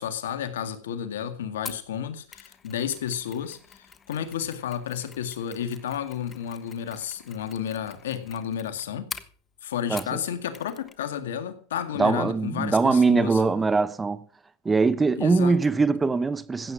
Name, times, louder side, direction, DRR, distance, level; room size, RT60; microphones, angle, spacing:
voice 1, 0.0-9.1 9.6-13.4 15.2-15.6, left 9 dB, 85° left, 1.9 m, -32 dB
Mechanisms, 1.7-10.2 10.5-11.0 11.3-11.4, left 6 dB, 25° left, 1.2 m, -45 dB
voice 2, 12.0-14.2 14.6-16.7, right 4 dB, 15° right, 0.9 m, -22 dB
15.5 x 8.9 x 6.2 m
hypercardioid pair, 110°, 0 cm